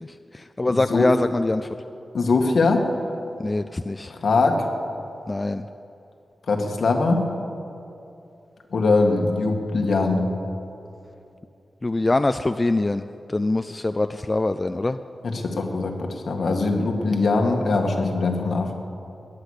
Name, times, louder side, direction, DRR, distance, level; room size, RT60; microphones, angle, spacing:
voice 1, 0.0-1.7 3.4-4.1 5.3-5.6 11.8-15.0, left 2 dB, 25° left, 9 dB, 0.3 m, -24 dB
voice 2, 0.7-1.1 2.1-2.9 4.1-4.7 6.5-7.2 8.7-10.3 15.2-18.7, left 3 dB, 65° left, 2 dB, 1.8 m, -22 dB
20.0 x 10.0 x 6.5 m, 2.8 s
wide cardioid pair, 125°, 0 cm